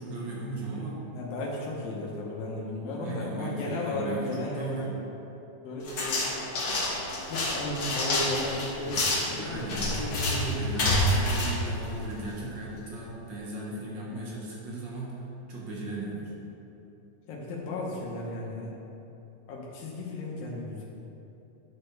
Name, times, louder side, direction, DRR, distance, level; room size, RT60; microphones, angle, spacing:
voice 1, 0.0-1.0 2.9-4.9 9.3-16.3, right 2 dB, 55° right, -4 dB, 1.3 m, -36 dB
voice 2, 1.1-4.9 5.6-6.4 7.3-9.6 14.1-14.4 17.3-18.8 19.5-20.8, left 2 dB, 90° left, -4 dB, 2.7 m, -35 dB
sound 1, 5.9-12.4, left 1 dB, 55° left, 1.3 m, -28 dB
11.0 x 6.4 x 3.3 m, 3.0 s
omnidirectional pair, 3.9 m